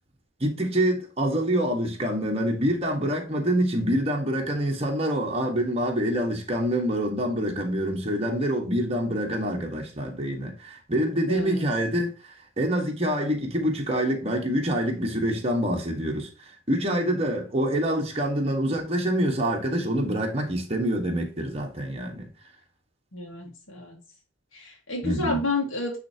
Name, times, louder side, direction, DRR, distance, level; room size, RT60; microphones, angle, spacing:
voice 1, 0.4-12.1 12.6-16.3 16.7-22.3 25.0-25.4, right 1 dB, 30° right, 1.4 m, -26 dB
voice 2, 11.3-11.6 23.1-24.0 24.5-26.0, left 2 dB, 85° left, 1.7 m, -30 dB
9.8 x 3.4 x 2.8 m
head